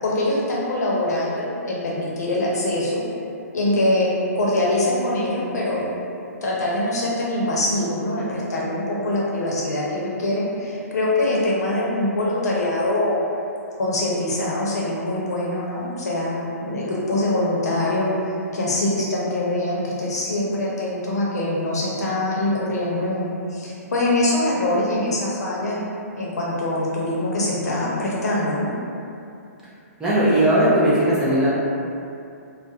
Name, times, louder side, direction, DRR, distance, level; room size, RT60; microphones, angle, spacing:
voice 1, 0.0-3.0 3.5-5.9 6.2-13.2 13.8-25.8 26.2-28.7, left 1 dB, 80° left, -5 dB, 0.7 m, -23 dB
voice 2, 30.0-31.6, right 1 dB, 5° right, -11 dB, 0.4 m, -18 dB
2.3 x 2.1 x 2.7 m, 2.6 s
hypercardioid pair, 155°, 9 cm